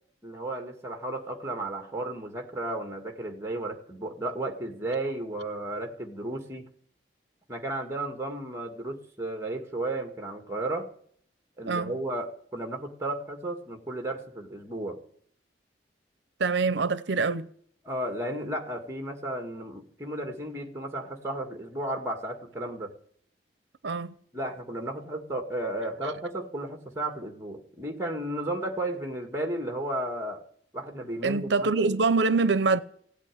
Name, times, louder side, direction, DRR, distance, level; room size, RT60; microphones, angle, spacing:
voice 1, 0.2-6.7 7.5-10.9 11.6-15.0 17.8-22.9 24.3-30.4 30.7-32.0, right 1 dB, 15° right, 2.0 m, -34 dB
voice 2, 16.4-17.5 23.8-24.1 31.2-32.8, right 4 dB, 80° right, 0.6 m, -24 dB
16.5 x 8.2 x 9.9 m
head